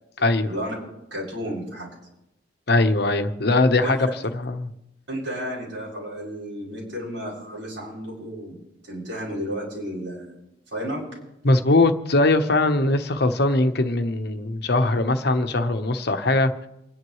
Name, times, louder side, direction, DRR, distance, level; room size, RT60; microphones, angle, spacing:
voice 1, 1.1-1.9 3.8-4.0 5.1-8.6 8.8-10.3 10.7-11.1, equal, 90° right, -5 dB, 7.1 m, -32 dB
voice 2, 2.7-4.0 4.3-4.7 11.4-16.5, left 2 dB, 60° left, 7 dB, 1.1 m, -20 dB
28.5 x 11.0 x 3.2 m, 0.90 s
head